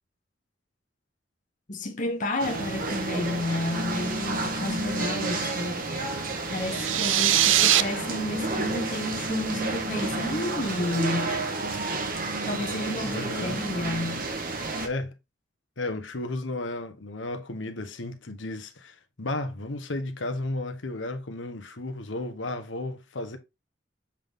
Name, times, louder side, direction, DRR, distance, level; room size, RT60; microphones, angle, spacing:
voice 1, 1.7-5.8 6.5-11.4 12.4-14.3, left 1 dB, 45° left, 1.1 m, -31 dB
sound 1, 2.4-14.9, right 2 dB, 50° right, 1.4 m, -30 dB
sound 2, 6.6-7.8, right 12 dB, 90° right, 0.5 m, -21 dB
voice 2, 13.1-13.6 14.8-15.1 15.8-23.4, left 2 dB, 85° left, 1.1 m, -33 dB
7.3 x 3.8 x 3.5 m
head